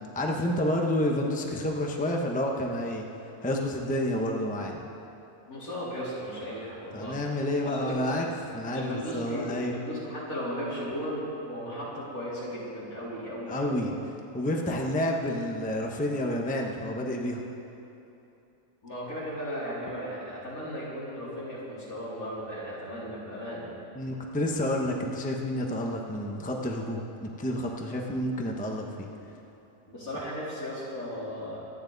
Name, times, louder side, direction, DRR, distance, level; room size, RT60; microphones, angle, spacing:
voice 1, 0.1-3.0 3.4-4.7 6.9-9.8 13.5-13.9 14.3-17.4 23.9-29.1, left 1 dB, 5° left, 0 dB, 0.9 m, -29 dB
voice 2, 5.5-7.2 7.6-8.0 8.7-13.8 18.8-23.7 29.9-31.6, equal, 70° left, -8 dB, 4.1 m, -36 dB
24.5 x 9.8 x 4.0 m, 2.9 s
omnidirectional pair, 1.5 m